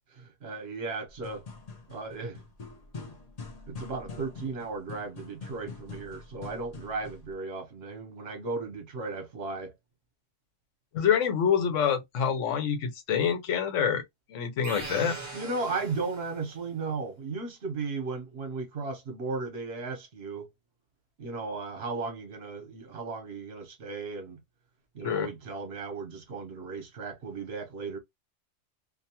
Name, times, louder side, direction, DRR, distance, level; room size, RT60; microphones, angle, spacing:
voice 1, 0.0-1.4 1.9-2.4 3.7-9.7 15.3-20.5 21.2-24.4 24.9-28.0, right 3 dB, 60° right, 1.0 m, -36 dB
sound 1, 1.1-7.3, left 4 dB, 45° left, 0.5 m, -44 dB
voice 2, 10.9-14.0 14.3-15.2 25.0-25.3, left 7 dB, 85° left, 1.0 m, -26 dB
sound 2, 14.6-16.5, right 3 dB, 30° right, 0.7 m, -40 dB
2.5 x 2.2 x 2.8 m
omnidirectional pair, 1.3 m